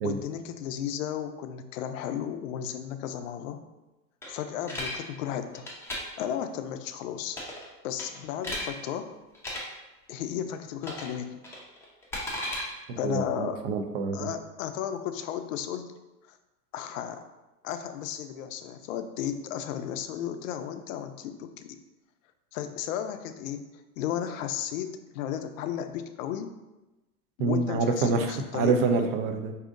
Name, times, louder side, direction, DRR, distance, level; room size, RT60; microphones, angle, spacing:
voice 1, 0.0-3.6 4.3-5.7 6.2-7.4 7.8-9.2 10.1-11.4 13.0-13.6 14.1-15.9 16.3-16.4 16.7-17.2 17.6-21.8 22.5-23.6 24.0-26.5 27.4-28.8, left 9 dB, 60° left, 9 dB, 0.5 m, -34 dB
sound 1, 4.2-5.0 5.5-6.0 7.3-7.7 8.0-8.7 9.3-9.6 10.8-11.1 11.4-12.6, left 1 dB, 5° left, 0.6 m, -35 dB
voice 2, 12.9-14.3 27.4-29.5, right 4 dB, 40° right, 6 dB, 0.5 m, -27 dB
4.7 x 2.7 x 2.5 m, 1.1 s
hypercardioid pair, 110°, 47 cm